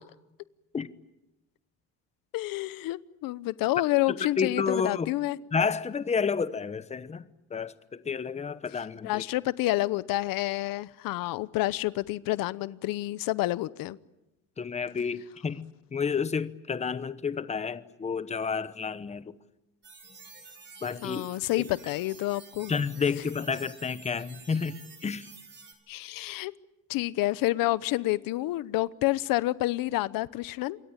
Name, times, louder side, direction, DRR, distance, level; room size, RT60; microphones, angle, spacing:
voice 1, 2.3-5.4 9.0-14.0 21.0-22.7 25.9-26.5 26.9-30.8, left 17 dB, 85° left, 18 dB, 0.9 m, -29 dB
voice 2, 4.1-5.1 5.5-7.2 7.5-9.2 14.6-19.3 20.8-21.2 21.6-21.7 22.7-25.3, left 5 dB, 20° left, 14 dB, 1.0 m, -30 dB
sound 1, 19.8-25.7, right 4 dB, 35° right, 5.5 m, -50 dB
27.5 x 23.0 x 9.0 m, 0.95 s
cardioid pair, 145°, 33 cm